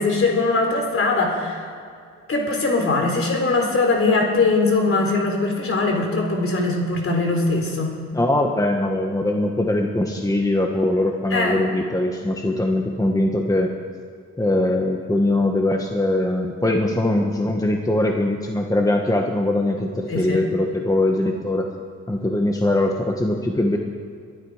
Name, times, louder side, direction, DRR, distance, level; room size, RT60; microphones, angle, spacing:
voice 1, 0.0-1.7 2.3-7.9 11.3-11.6 20.1-20.4, left 3 dB, 45° left, 2 dB, 4.1 m, -21 dB
voice 2, 8.1-13.7 14.4-21.7 22.1-23.8, left 1 dB, 10° left, 2 dB, 1.4 m, -21 dB
22.5 x 12.5 x 5.0 m, 2.3 s
cardioid pair, 90°, 30 cm